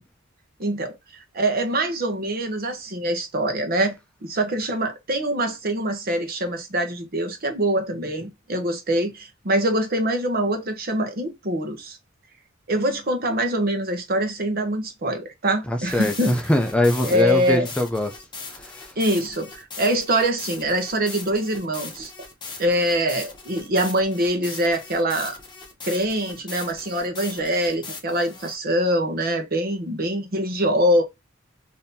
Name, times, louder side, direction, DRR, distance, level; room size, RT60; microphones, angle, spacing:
voice 1, 0.6-0.9 1.3-3.9 4.2-12.0 12.7-16.3 17.0-17.7 19.0-22.1 22.6-25.4 25.8-31.0, right 1 dB, 50° right, 0.9 m, -24 dB
voice 2, 15.7-18.1 18.5-18.9, left 1 dB, 5° left, 0.4 m, -22 dB
sound 1, 15.8-28.6, left 4 dB, 20° left, 0.9 m, -39 dB
3.8 x 2.8 x 2.7 m
head